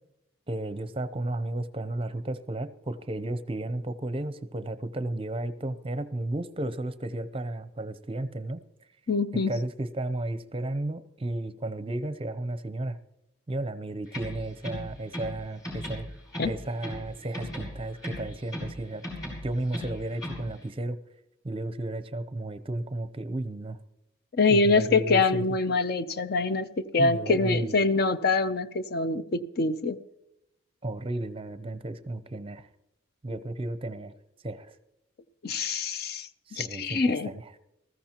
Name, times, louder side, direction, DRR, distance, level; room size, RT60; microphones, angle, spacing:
voice 1, 0.5-8.6 9.3-13.0 13.5-16.1 16.4-19.0 19.4-21.0 21.4-23.8 24.5-25.5 27.0-27.8 30.8-32.7 33.2-34.1 34.4-34.8 36.5-37.5, right 2 dB, 30° right, 0.6 m, -33 dB
voice 2, 9.1-9.5 16.4-16.5 24.4-30.0 35.4-37.3, left 3 dB, 55° left, 0.6 m, -25 dB
sound 1, 14.1-15.4 15.6-17.1 17.3-18.8 19.0-20.5, left 1 dB, 20° left, 4.9 m, -37 dB
20.0 x 14.5 x 2.9 m
head